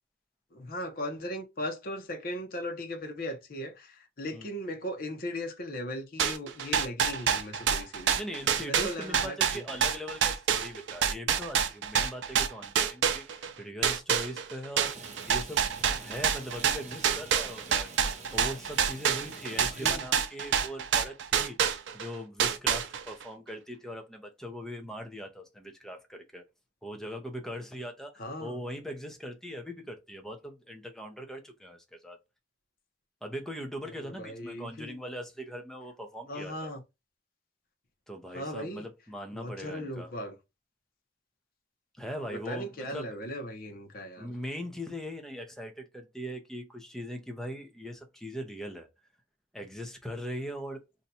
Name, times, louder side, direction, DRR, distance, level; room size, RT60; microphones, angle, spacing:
voice 1, 0.5-8.2 8.7-9.6 19.7-20.1 28.2-28.6 34.0-35.0 36.3-36.8 38.3-38.9 39.3-40.4 42.3-44.3, left 1 dB, 55° left, 0.7 m, -38 dB
sound 1, 6.2-13.5 13.8-22.1 22.4-23.2, right 7 dB, 90° right, 0.4 m, -27 dB
voice 2, 8.2-15.7 15.9-17.9 18.3-26.4 26.8-28.1 28.4-32.2 33.2-36.7 38.1-40.1 42.0-43.1 44.2-48.9 49.5-50.8, equal, 5° left, 0.6 m, -40 dB
Rain, 14.8-19.9, right 4 dB, 40° right, 0.6 m, -46 dB
2.7 x 2.2 x 4.0 m
head